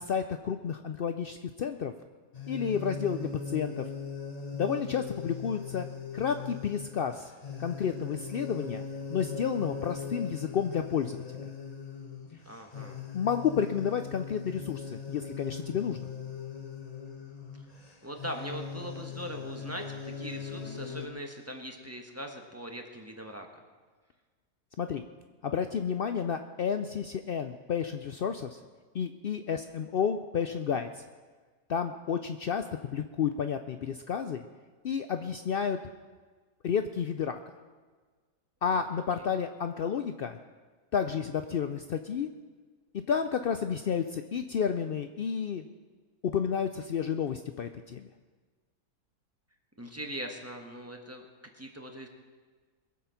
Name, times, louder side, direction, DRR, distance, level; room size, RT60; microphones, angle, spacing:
voice 1, 0.0-1.9 2.5-3.9 4.5-5.9 6.1-7.3 7.6-8.8 9.1-11.5 13.1-16.1 24.8-25.0 25.4-28.6 28.9-31.0 31.7-34.4 34.8-35.8 36.6-37.4 38.6-40.4 40.9-42.3 42.9-45.6 46.2-48.1, left 7 dB, 80° left, 8 dB, 0.5 m, -31 dB
sound 1, 2.3-21.1, left 6 dB, 30° left, 1.1 m, -40 dB
voice 2, 12.4-13.0 17.6-17.7 18.0-23.5 38.7-38.8 49.8-51.2 51.5-52.1, equal, 10° right, 3 dB, 1.3 m, -41 dB
22.0 x 7.6 x 5.8 m, 1.4 s
omnidirectional pair, 1.7 m